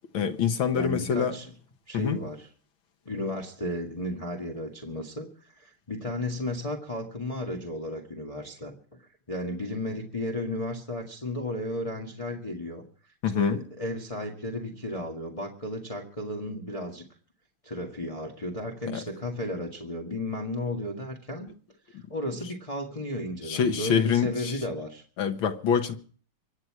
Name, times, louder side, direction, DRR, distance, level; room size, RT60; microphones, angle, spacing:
voice 1, 0.1-1.3 1.9-2.2 13.2-13.6 18.9-19.0 21.9-22.0 23.5-24.6 25.2-26.0, left 7 dB, 70° left, 2.0 m, -25 dB
voice 2, 0.7-1.5 1.9-2.5 3.1-8.7 9.0-12.8 13.3-17.0 17.6-21.5 21.9-25.0, left 1 dB, 15° left, 1.7 m, -34 dB
25.0 x 9.5 x 4.8 m
omnidirectional pair, 2.4 m